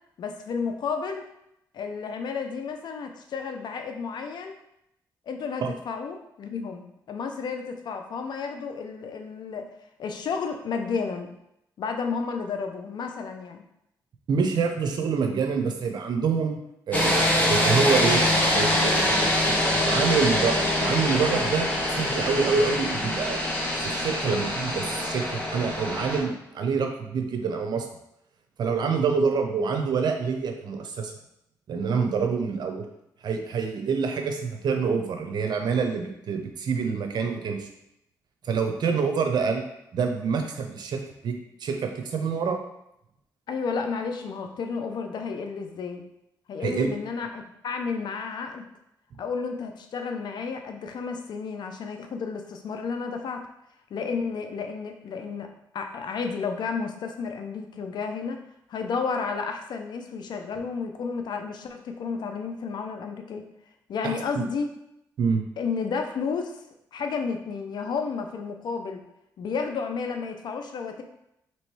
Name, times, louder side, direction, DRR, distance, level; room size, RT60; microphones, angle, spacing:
voice 1, 0.2-1.3 1.7-4.5 5.3-9.7 10.0-11.3 11.8-13.6 43.5-46.1 46.5-48.6 49.2-53.4 53.9-55.5 55.7-58.4 58.7-63.5 63.9-64.7 65.6-66.6 66.9-69.0 69.4-71.0, left 5 dB, 70° left, 5 dB, 0.6 m, -32 dB
voice 2, 14.3-16.6 16.9-17.1 17.5-18.2 18.5-23.4 23.8-27.9 28.6-31.1 31.7-32.9 33.2-37.7 38.4-39.6 39.9-42.6 46.6-46.9 64.0-64.1 65.2-65.4, right 5 dB, 65° right, 4 dB, 0.7 m, -26 dB
sound 1, 16.9-26.2, left 1 dB, 20° left, 1.3 m, -24 dB
3.1 x 3.0 x 4.6 m, 0.81 s
cardioid pair, 70°, 8 cm